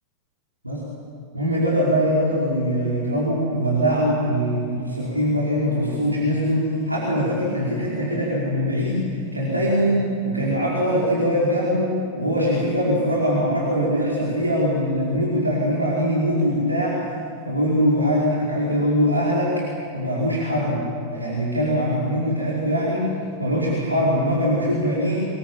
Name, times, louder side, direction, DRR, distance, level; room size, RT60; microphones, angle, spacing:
voice 1, 1.3-17.0 17.5-19.5 19.9-20.8 21.1-23.0 23.4-25.3, equal, 85° right, -6 dB, 5.1 m, -22 dB
25.5 x 22.0 x 9.0 m, 2.5 s
figure-of-eight pair, 90°, 0 cm